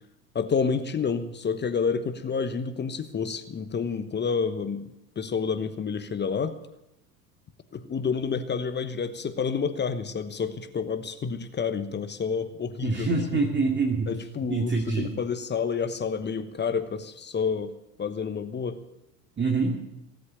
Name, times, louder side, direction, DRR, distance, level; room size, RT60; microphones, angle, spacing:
voice 1, 0.3-4.9 5.2-6.6 7.7-13.4 14.1-17.7 18.0-18.8, left 6 dB, 25° left, 10 dB, 1.1 m, -29 dB
voice 2, 12.8-14.1 14.5-15.1 19.4-19.8, right 4 dB, 25° right, 1 dB, 2.4 m, -25 dB
17.0 x 8.1 x 8.9 m, 0.87 s
hypercardioid pair, 75°, 46 cm